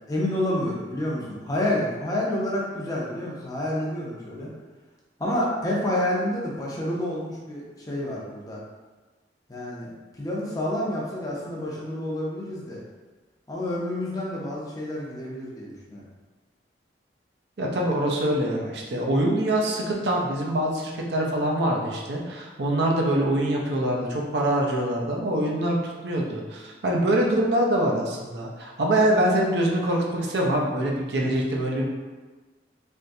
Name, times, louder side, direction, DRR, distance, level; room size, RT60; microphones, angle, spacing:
voice 1, 0.1-4.5 5.2-8.6 9.5-12.8 13.5-16.1, left 1 dB, 20° left, -4 dB, 0.6 m, -29 dB
voice 2, 17.6-31.9, right 1 dB, 70° right, -1 dB, 0.6 m, -24 dB
3.5 x 2.7 x 2.6 m, 1.3 s
head